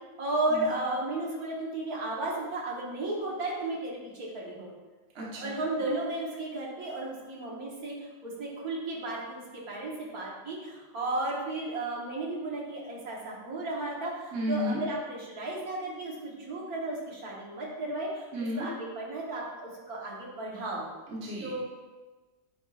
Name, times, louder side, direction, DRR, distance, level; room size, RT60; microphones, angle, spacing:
voice 1, 0.2-4.7 5.4-7.9 8.2-18.3 18.6-20.9 21.4-21.6, right 2 dB, 70° right, -4 dB, 1.7 m, -34 dB
voice 2, 5.1-5.5 14.3-14.8 18.3-18.7 21.1-21.6, equal, 50° right, -4 dB, 1.3 m, -33 dB
9.6 x 4.4 x 2.4 m, 1.2 s
omnidirectional pair, 1.7 m